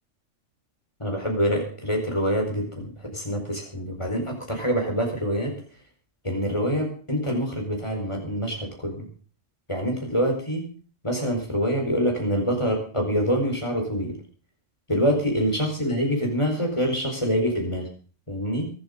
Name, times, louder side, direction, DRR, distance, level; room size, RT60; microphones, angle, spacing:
voice 1, 1.0-5.5 6.2-9.1 9.7-10.7 11.0-14.2 14.9-17.9 18.3-18.7, equal, 20° left, 2 dB, 4.7 m, -25 dB
23.5 x 8.2 x 5.2 m, 0.41 s
omnidirectional pair, 1.3 m